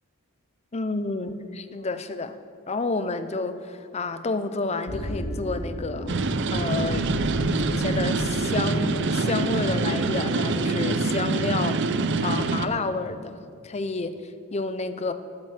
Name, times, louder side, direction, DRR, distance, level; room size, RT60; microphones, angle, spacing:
voice 1, 0.7-2.4 2.7-6.2 6.5-7.1 7.6-15.1, left 3 dB, 30° left, 11 dB, 0.6 m, -30 dB
sound 1, 1.2-1.8 2.3-2.4 4.9-12.7, equal, 90° left, 2.6 m, -35 dB
sound 2, 6.1-12.7, right 3 dB, 55° right, 0.6 m, -25 dB
11.0 x 8.9 x 7.5 m, 2.3 s
head